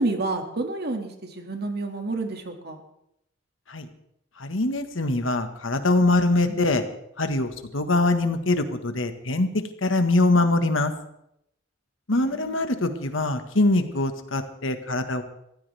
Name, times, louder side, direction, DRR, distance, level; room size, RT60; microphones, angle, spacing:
voice 1, 0.0-2.8 6.5-6.6 12.1-12.6, right 2 dB, 55° right, 4 dB, 2.3 m, -30 dB
voice 2, 4.4-6.8 7.2-10.9 12.1-15.2, left 2 dB, 90° left, 7 dB, 1.6 m, -23 dB
22.5 x 14.5 x 3.5 m, 0.79 s
head